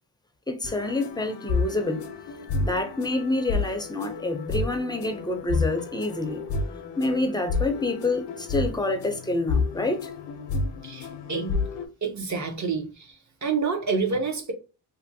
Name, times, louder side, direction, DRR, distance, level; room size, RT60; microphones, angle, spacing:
voice 1, 0.5-2.1 2.6-6.4 7.0-10.1, left 2 dB, 10° left, 0.4 m, -27 dB
sound 1, 0.6-11.9, left 4 dB, 75° left, 0.6 m, -30 dB
voice 2, 10.8-11.6 12.0-13.1 13.4-14.5, right 4 dB, 40° right, 0.6 m, -28 dB
2.5 x 2.5 x 2.6 m
wide cardioid pair, 125°, 42 cm